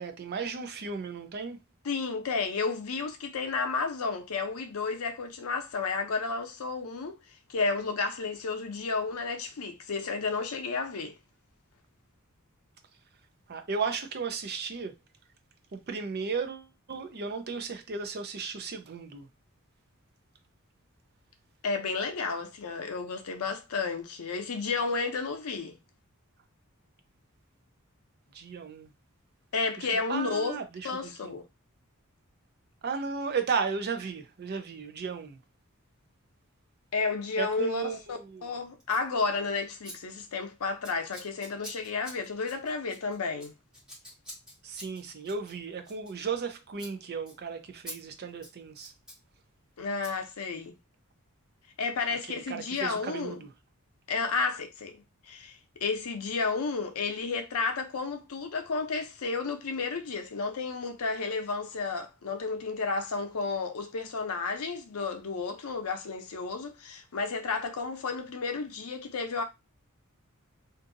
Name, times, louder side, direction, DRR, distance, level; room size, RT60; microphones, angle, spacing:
voice 1, 0.0-1.6 13.5-14.9 15.7-19.3 28.3-28.9 29.8-31.3 32.8-35.4 37.4-38.6 44.6-48.9 52.1-53.5, right 5 dB, 50° right, 0.5 m, -35 dB
voice 2, 1.8-7.2 7.5-11.1 21.6-25.8 29.5-30.6 30.8-31.4 36.9-43.5 49.8-50.8 51.8-53.4 54.1-55.6 55.8-69.4, left 4 dB, 85° left, 0.6 m, -32 dB
Scissors, 38.8-39.1 39.8-40.0 40.2-40.5 40.8-46.5 46.7-46.9 47.3-47.4 47.9-48.0 48.3-49.2 50.0-50.1, equal, 5° right, 1.2 m, -47 dB
2.7 x 2.5 x 2.6 m
head